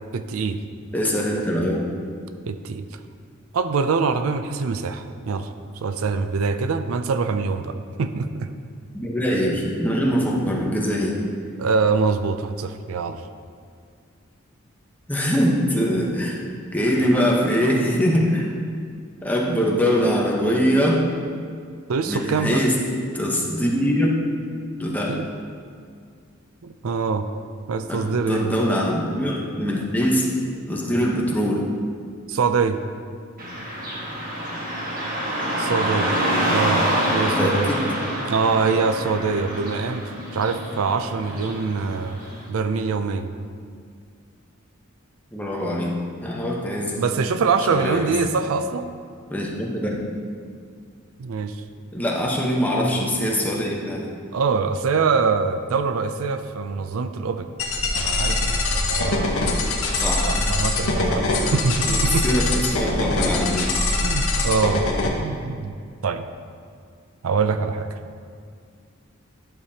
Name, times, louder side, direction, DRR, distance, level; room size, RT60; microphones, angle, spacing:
voice 1, 0.1-0.6 2.5-2.8 3.5-5.5 5.8-8.5 11.6-13.2 21.9-22.6 24.8-25.3 26.6-27.3 27.7-28.5 32.3-32.8 35.6-36.1 36.5-36.9 37.1-37.7 38.3-42.2 42.5-43.3 47.0-48.9 51.2-51.6 54.3-57.5 58.0-59.3 60.3-62.2 64.0-64.8 65.2-65.8 66.0-66.3 67.2-67.9, right 5 dB, 90° right, 9 dB, 0.4 m, -24 dB
voice 2, 0.9-1.9 8.9-11.2 15.1-16.4 16.7-18.5 19.2-21.0 22.1-22.7 23.1-24.1 24.8-25.2 27.9-30.3 30.7-31.7 37.2-37.8 45.3-45.9 46.2-47.0 47.7-48.1 49.3-50.0 51.9-54.1 59.9-60.3 61.8-63.8, equal, 10° left, -3 dB, 1.0 m, -23 dB
Car passing by / Traffic noise roadway noise, 33.4-42.4, equal, 45° right, 1.5 m, -26 dB
sound 1, 57.6-65.1, left 2 dB, 90° left, 1.1 m, -23 dB
11.0 x 6.7 x 2.8 m, 2.2 s
head